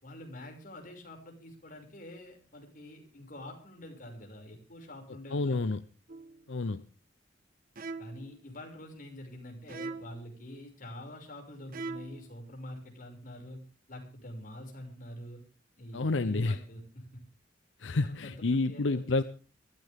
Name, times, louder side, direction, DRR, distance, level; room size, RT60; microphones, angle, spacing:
voice 1, 0.0-5.7 8.0-13.6 13.9-15.4 15.8-17.2 18.0-19.2, left 1 dB, 50° left, 6.0 m, -46 dB
voice 2, 5.3-5.8 6.5-6.8 15.9-16.6 17.8-19.2, left 3 dB, 80° left, 0.7 m, -29 dB
sound 1, 6.1-6.5 7.8-8.4 9.7-10.3 11.7-12.3, right 3 dB, 50° right, 1.2 m, -41 dB
23.0 x 14.5 x 3.6 m
head